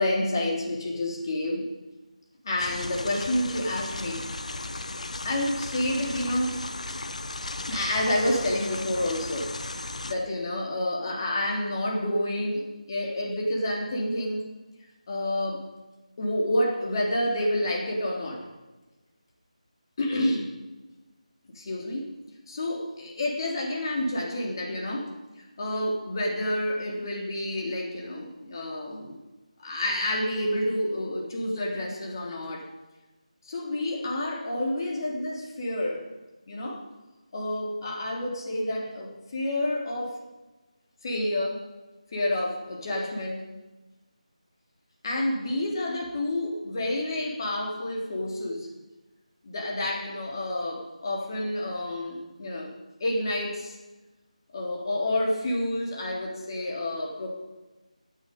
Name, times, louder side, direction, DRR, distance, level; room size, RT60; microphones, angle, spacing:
voice 1, 0.0-1.7 2.4-4.2 5.2-6.6 7.7-14.5 15.1-15.7 16.2-18.5 20.0-20.6 21.5-22.1 22.5-25.1 25.6-29.2 29.6-32.7 33.4-36.1 36.5-36.8 37.3-40.2 41.0-41.6 42.1-43.5 45.0-48.7 49.4-52.7 53.0-53.8 54.5-57.3, left 1 dB, 35° left, -1 dB, 3.4 m, -29 dB
sound 1, 2.6-10.1, left 2 dB, 65° left, 1.2 m, -36 dB
17.0 x 9.1 x 5.4 m, 1.1 s
figure-of-eight pair, 165°, 4 cm